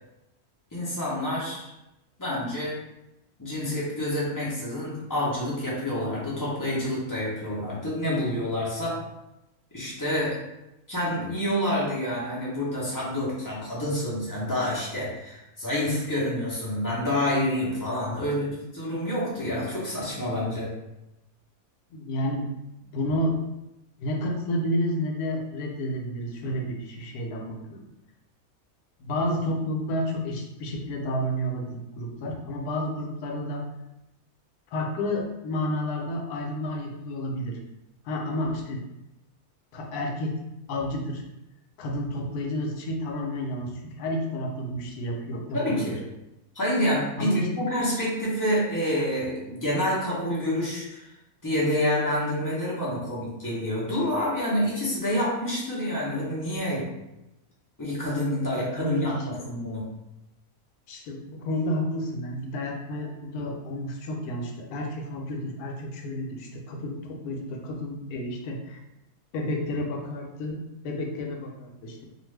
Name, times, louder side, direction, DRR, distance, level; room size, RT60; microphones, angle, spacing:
voice 1, 0.7-1.7 2.2-2.7 3.4-9.0 9.7-10.4 10.9-20.7 45.5-46.0 46.5-51.0 51.4-56.8 57.8-59.8, left 1 dB, 25° left, -7 dB, 0.4 m, -28 dB
voice 2, 21.9-22.5 22.8-23.4 24.0-27.9 29.0-33.6 34.7-37.6 38.0-38.8 39.7-40.3 40.7-41.2 41.8-45.9 47.2-47.5 58.5-59.3 60.9-68.8 69.3-72.0, left 1 dB, 85° left, 2 dB, 1.1 m, -31 dB
2.5 x 2.3 x 3.2 m, 0.92 s
omnidirectional pair, 1.6 m